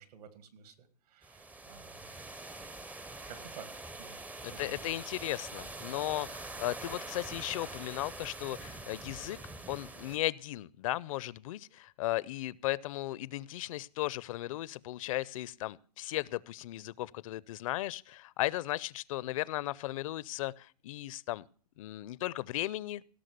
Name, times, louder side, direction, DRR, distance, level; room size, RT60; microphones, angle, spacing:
voice 1, 0.0-2.1 3.3-4.2 4.5-4.8, right 7 dB, 70° right, 11 dB, 2.1 m, -52 dB
sound 1, 1.2-10.2, right 2 dB, 5° right, 0.5 m, -45 dB
voice 2, 4.4-9.4 9.7-21.5 21.8-23.1, left 16 dB, 55° left, 21 dB, 0.5 m, -36 dB
16.5 x 6.2 x 6.6 m, 0.42 s
hypercardioid pair, 135°, 21 cm